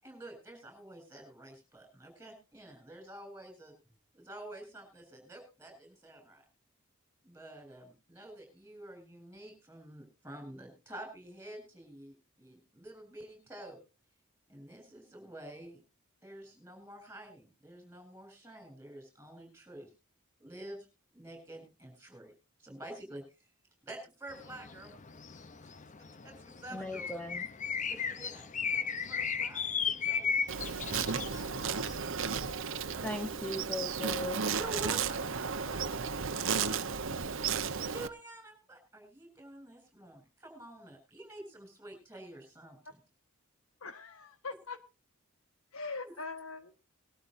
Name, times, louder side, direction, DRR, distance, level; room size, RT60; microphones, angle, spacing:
voice 1, 0.0-3.8 4.1-6.4 7.2-13.8 14.5-15.8 16.2-19.9 20.4-20.9 21.1-22.3 22.6-23.2 23.9-24.9 26.0-27.2 27.8-30.3 30.8-32.0 32.6-33.3 33.7-33.8 34.5-36.8 37.9-43.0 46.0-46.1, right 1 dB, 10° right, 4 dB, 7.5 m, -49 dB
sound 1, 24.3-31.9, left 6 dB, 35° left, 0.7 m, -36 dB
voice 2, 26.7-27.5 33.0-34.5, left 2 dB, 5° left, 7 dB, 1.0 m, -38 dB
Insect, 30.5-38.1, right 6 dB, 60° right, 1.0 m, -34 dB
voice 3, 43.8-44.8 45.7-46.8, left 4 dB, 75° left, 10 dB, 1.4 m, -41 dB
21.5 x 12.5 x 2.6 m, 0.30 s
head